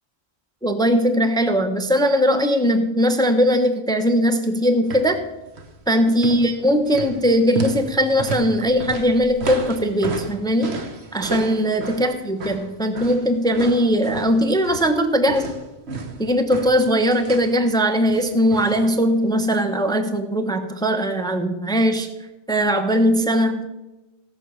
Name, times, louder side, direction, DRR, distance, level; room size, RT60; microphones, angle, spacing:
voice 1, 0.6-5.2 5.9-10.8 11.1-15.6 16.2-22.1 22.5-23.7, equal, 5° left, 7 dB, 0.8 m, -20 dB
sound 1, 4.8-5.2 5.5-5.8 6.1-15.0 15.3-17.6 18.1-18.9 19.1-19.2, right 4 dB, 75° right, 1.5 m, -33 dB
17.0 x 6.3 x 6.6 m, 1.0 s
omnidirectional pair, 1.1 m